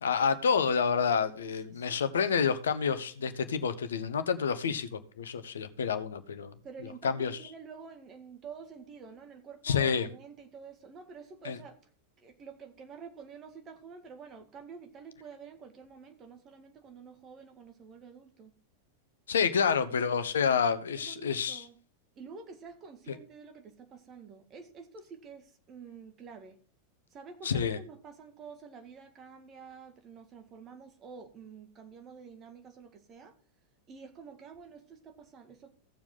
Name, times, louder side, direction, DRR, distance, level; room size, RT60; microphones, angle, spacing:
voice 1, 0.0-6.5 6.8-7.5 9.6-10.1 11.4-11.6 19.3-21.7 23.1-23.2 27.4-27.8, left 6 dB, 65° left, 0.9 m, -29 dB
voice 2, 1.4-2.5 6.6-11.8 12.2-18.5 19.8-20.0 21.0-21.7 22.2-26.6 27.1-33.3 33.9-35.7, right 5 dB, 30° right, 1.9 m, -49 dB
15.5 x 7.2 x 3.8 m
figure-of-eight pair, 90°, 0 cm